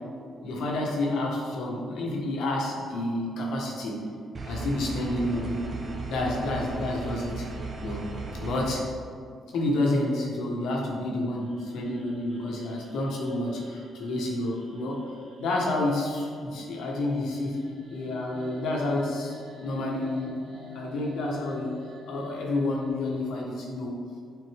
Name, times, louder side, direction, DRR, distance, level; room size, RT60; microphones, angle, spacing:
voice 1, 0.4-4.0 4.4-5.6 6.1-7.5 7.8-8.0 8.4-8.8 9.5-15.0 15.4-17.6 17.9-19.3 19.6-20.5 20.7-21.7 22.1-24.0, left 1 dB, 80° left, -2 dB, 1.5 m, -29 dB
sound 1, 4.3-8.7, right 3 dB, 40° right, 1.0 m, -36 dB
sound 2, 11.0-22.9, left 1 dB, 70° right, 1.8 m, -48 dB
9.6 x 4.2 x 3.7 m, 2.3 s
cardioid pair, 90°, 0 cm